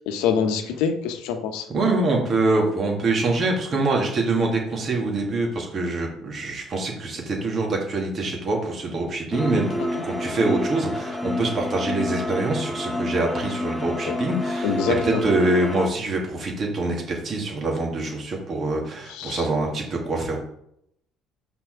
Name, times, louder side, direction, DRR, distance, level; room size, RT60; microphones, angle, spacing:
voice 1, 0.1-1.7 9.8-10.0 14.0-14.1 14.6-15.2 19.1-19.5, left 6 dB, 75° left, 7 dB, 1.1 m, -25 dB
voice 2, 1.7-20.4, right 2 dB, 45° right, 0 dB, 2.6 m, -25 dB
sound 1, 9.3-15.9, left 1 dB, 5° left, 1.3 m, -29 dB
5.7 x 4.6 x 6.1 m, 0.72 s
hypercardioid pair, 60°, 0 cm